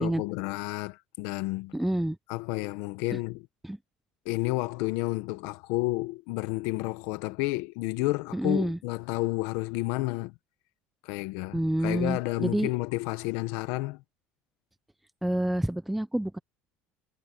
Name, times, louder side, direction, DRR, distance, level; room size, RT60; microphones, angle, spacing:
voice 1, 0.0-1.7 2.3-3.4 4.2-10.3 11.0-14.0, left 21 dB, 75° left, 0.9 m, -31 dB
voice 2, 1.7-2.2 3.1-3.2 3.6-3.8 8.3-8.8 11.5-12.7 15.2-16.4, right 1 dB, 5° right, 0.5 m, -28 dB
cardioid pair, 135°, 4 cm